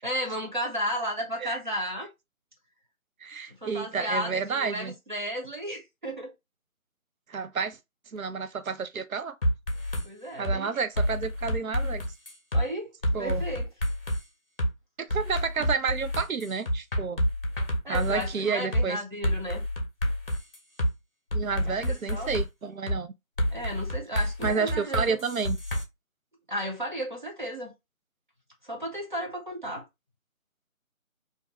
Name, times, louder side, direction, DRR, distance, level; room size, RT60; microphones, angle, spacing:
voice 1, 0.0-2.1 3.6-6.3 10.0-10.7 12.5-12.9 13.2-13.7 17.8-19.6 21.6-22.3 23.5-25.2 26.5-27.7 28.6-29.8, equal, 35° right, 0.8 m, -33 dB
voice 2, 3.2-4.9 7.3-7.8 8.1-9.4 10.4-12.0 13.1-13.4 15.0-17.3 17.9-19.0 21.3-23.1 24.4-25.6, right 5 dB, 80° right, 0.5 m, -30 dB
sound 1, 9.4-10.1 10.4-10.6 11.0-12.6 13.0-14.2 14.6-14.7 15.1-18.3 18.7-18.9 19.2-20.9 21.3-22.5 22.9-23.0 23.4-25.8, equal, 45° left, 0.7 m, -28 dB
2.6 x 2.2 x 3.7 m
figure-of-eight pair, 160°, 41 cm